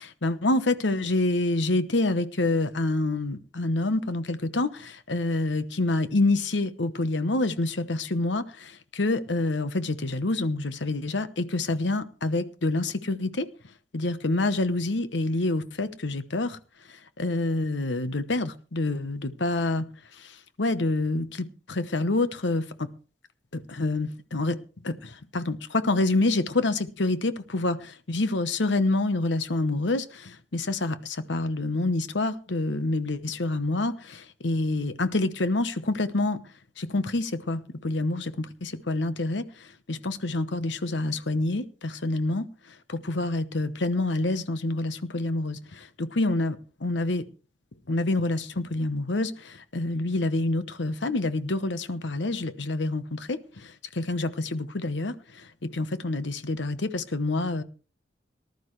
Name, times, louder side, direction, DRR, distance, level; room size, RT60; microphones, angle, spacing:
voice 1, 0.0-13.5 13.9-16.6 17.2-19.9 20.2-22.9 23.5-24.6 24.8-36.4 36.8-42.5 42.9-47.3 47.9-57.6, left 2 dB, 75° left, 1.0 m, -27 dB
19.0 x 12.0 x 3.2 m
head